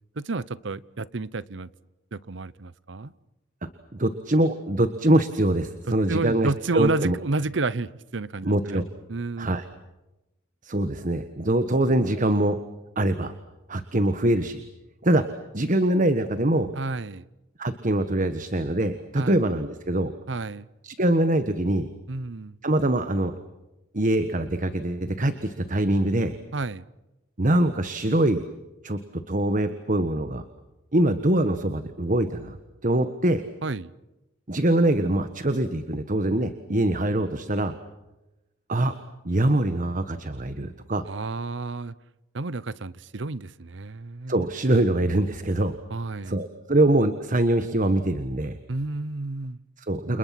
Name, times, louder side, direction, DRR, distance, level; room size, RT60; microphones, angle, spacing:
voice 1, 0.2-1.7 2.1-3.1 6.1-8.8 9.1-9.5 16.8-17.2 19.2-19.4 20.3-20.7 22.1-22.5 26.5-26.9 33.6-33.9 41.1-41.9 42.3-44.4 44.7-44.9 45.9-46.3 48.7-49.6, right 3 dB, 65° right, 0.8 m, -30 dB
voice 2, 3.9-7.1 8.4-8.8 9.4-9.6 10.6-12.6 12.9-13.3 13.7-14.6 15.0-15.2 15.5-16.7 17.6-20.1 20.8-21.9 22.6-23.4 23.9-26.3 27.4-28.4 28.8-29.0 29.3-30.4 30.9-32.6 32.8-33.4 34.5-37.7 38.7-38.9 39.2-41.1 44.3-45.7 46.2-48.6 49.8-50.2, right 1 dB, 40° right, 1.4 m, -23 dB
30.0 x 29.0 x 6.0 m
head